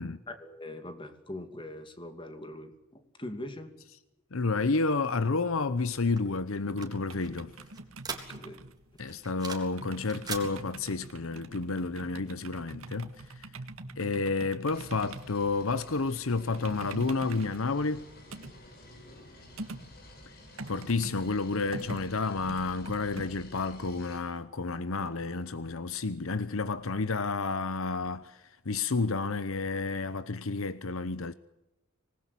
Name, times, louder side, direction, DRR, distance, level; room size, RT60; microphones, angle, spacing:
voice 1, 0.3-3.8 8.1-8.6, left 1 dB, 25° left, 2.7 m, -42 dB
voice 2, 4.3-7.5 9.0-13.5 14.0-18.1 20.7-31.3, left 3 dB, 65° left, 0.9 m, -30 dB
sound 1, 5.5-23.3, right 2 dB, 70° right, 1.9 m, -45 dB
sound 2, 6.1-8.7 9.0-9.8 10.0-10.5, right 5 dB, 20° right, 3.7 m, -40 dB
sound 3, 14.7-24.2, left 1 dB, 45° left, 6.2 m, -52 dB
25.5 x 20.0 x 8.4 m
head